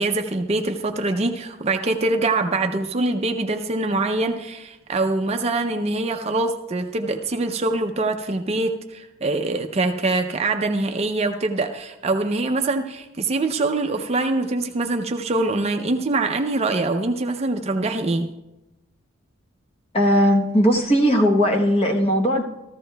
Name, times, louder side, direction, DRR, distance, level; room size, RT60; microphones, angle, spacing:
voice 1, 0.0-18.3, right 2 dB, 30° right, 5 dB, 0.4 m, -24 dB
voice 2, 19.9-22.4, equal, 30° left, 3 dB, 0.9 m, -18 dB
14.5 x 14.5 x 2.2 m, 0.98 s
head